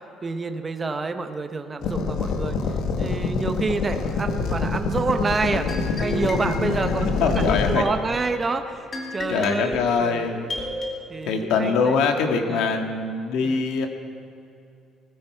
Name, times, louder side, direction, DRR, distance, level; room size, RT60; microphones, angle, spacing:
voice 1, 0.2-5.7 6.0-10.4 11.1-12.0 12.3-12.8 13.4-13.6, right 3 dB, 20° right, 7 dB, 0.8 m, -28 dB
sound 1, 1.8-7.8, left 4 dB, 70° left, 1.4 m, -26 dB
sound 2, 5.7-10.9, left 1 dB, 30° left, 2.1 m, -34 dB
voice 2, 7.2-7.8 9.3-10.5 11.2-13.9, left 5 dB, 85° left, 4 dB, 1.6 m, -23 dB
20.0 x 14.5 x 4.5 m, 2.7 s
cardioid pair, 170°, 0 cm